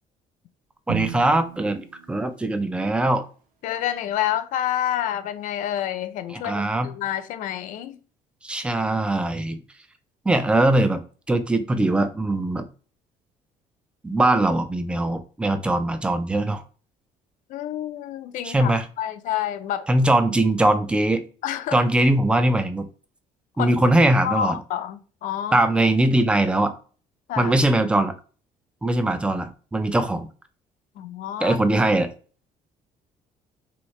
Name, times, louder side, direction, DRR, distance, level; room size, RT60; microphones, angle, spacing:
voice 1, 0.9-3.3 6.3-6.9 8.4-9.6 10.3-11.0 11.3-12.7 14.0-16.6 18.4-18.8 19.9-21.2 21.7-22.9 23.6-24.6 25.5-26.7 27.4-28.1 28.8-30.3 31.4-32.1, right 1 dB, 5° right, 0.3 m, -21 dB
Drum, 0.9-2.9, right 11 dB, 70° right, 0.7 m, -35 dB
voice 2, 3.6-8.0 17.5-18.7 19.0-19.9 21.4-21.8 23.6-23.7 24.2-25.7 27.3-27.5 31.0-31.6, left 11 dB, 65° left, 0.4 m, -28 dB
3.0 x 2.7 x 3.0 m
cardioid pair, 150°, 15 cm